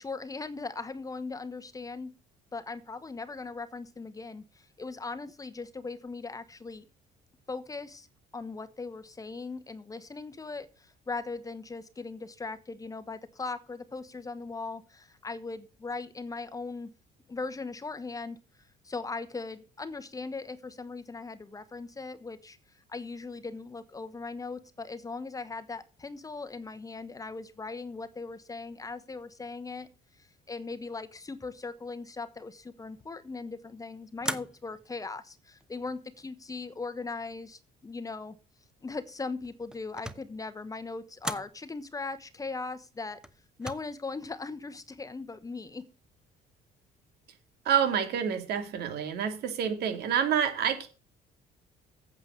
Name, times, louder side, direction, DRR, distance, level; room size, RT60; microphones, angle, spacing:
voice 1, 0.0-2.1 2.5-6.9 7.5-8.1 8.3-16.9 17.3-18.4 18.8-22.6 22.9-29.9 30.5-38.4 38.8-43.2 43.6-45.9, left 3 dB, 20° left, 11 dB, 1.0 m, -39 dB
sound 1, 34.2-34.9 35.6-36.2 39.4-40.4 41.2-41.6 43.2-43.7, equal, 5° right, 0.9 m, -38 dB
voice 2, 47.6-50.9, right 8 dB, 70° right, 8 dB, 2.6 m, -28 dB
8.8 x 7.7 x 6.7 m, 0.34 s
cardioid pair, 110°, 17 cm